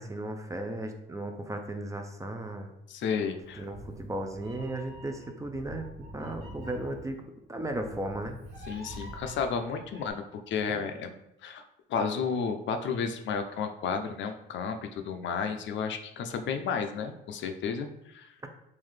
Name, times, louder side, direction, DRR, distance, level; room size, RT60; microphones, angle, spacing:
voice 1, 0.0-2.7 3.6-7.2 7.5-8.4, right 1 dB, 15° right, 4 dB, 0.5 m, -36 dB
voice 2, 2.9-3.7 8.7-11.6 11.9-18.3, left 6 dB, 70° left, 7 dB, 0.5 m, -32 dB
Meow, 3.4-10.1, equal, 80° right, 1.2 m, -46 dB
3.8 x 2.6 x 3.2 m, 0.84 s
cardioid pair, 90°, 20 cm